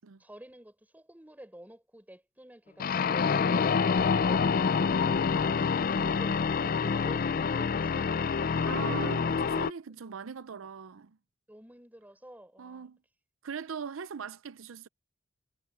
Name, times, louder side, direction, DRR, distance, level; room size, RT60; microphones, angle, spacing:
voice 1, 0.2-8.2 8.5-9.0 9.9-10.0 11.5-12.9, right 1 dB, 10° right, 4.8 m, -50 dB
sound 1, 2.8-9.7, left 5 dB, 45° left, 0.4 m, -27 dB
voice 2, 8.7-11.2 12.6-13.0 13.4-14.9, right 6 dB, 85° right, 0.6 m, -40 dB
head